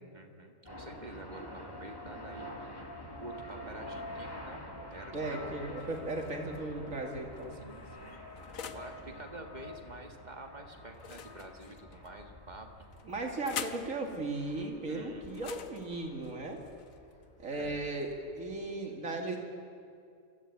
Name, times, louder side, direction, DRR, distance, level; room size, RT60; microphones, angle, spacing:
voice 1, 0.1-2.7 3.2-4.6 4.9-5.5 7.5-8.2 8.7-12.9 14.9-15.3 17.6-17.8, right 2 dB, 30° right, 4 dB, 1.7 m, -48 dB
sound 1, 0.7-18.7, left 1 dB, 15° left, 1.6 m, -48 dB
voice 2, 5.1-7.6 13.0-16.6 17.4-19.4, right 2 dB, 65° right, 1 dB, 2.7 m, -36 dB
sound 2, 5.8-6.6 7.3-9.0 10.9-12.1 12.9-13.9 15.3-17.2, left 8 dB, 75° left, 1.3 m, -45 dB
22.5 x 14.0 x 8.6 m, 2.4 s
omnidirectional pair, 1.5 m